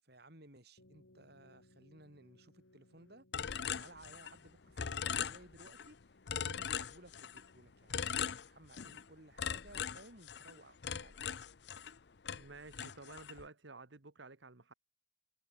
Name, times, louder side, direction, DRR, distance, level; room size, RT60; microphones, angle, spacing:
voice 1, 0.0-3.3 3.6-6.0 6.3-11.4, right 1 dB, 55° right, 5.1 m, -59 dB
sound 1, 0.8-8.2, left 1 dB, 90° left, 3.2 m, -68 dB
sound 2, 3.3-4.5 4.8-5.9 6.3-7.5 7.9-9.0 9.4-12.0 12.3-13.4, left 7 dB, 55° left, 0.6 m, -40 dB
voice 2, 12.3-14.7, right 3 dB, 70° right, 1.5 m, -53 dB
head